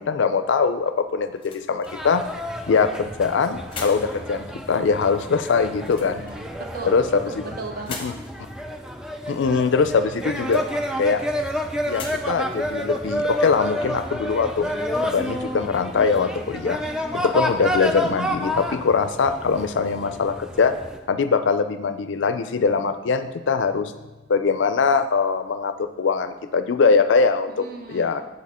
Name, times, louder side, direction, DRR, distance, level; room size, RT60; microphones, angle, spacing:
voice 1, 0.0-2.2 2.7-6.2 6.8-7.0 7.4-7.5 8.0-8.1 9.3-10.6 11.0-11.2 11.9-14.7 15.0-16.8 17.1-20.7 21.1-23.9 24.3-28.2, left 5 dB, 70° left, 10 dB, 0.4 m, -22 dB
sound 1, 0.8-14.0, left 4 dB, 25° left, 0.8 m, -45 dB
sound 2, 1.9-21.0, equal, 5° right, 0.3 m, -30 dB
voice 2, 6.2-7.0 7.3-8.0 9.1-9.2 27.6-28.2, right 3 dB, 45° right, 3 dB, 0.7 m, -36 dB
7.3 x 4.2 x 4.2 m, 1.1 s
head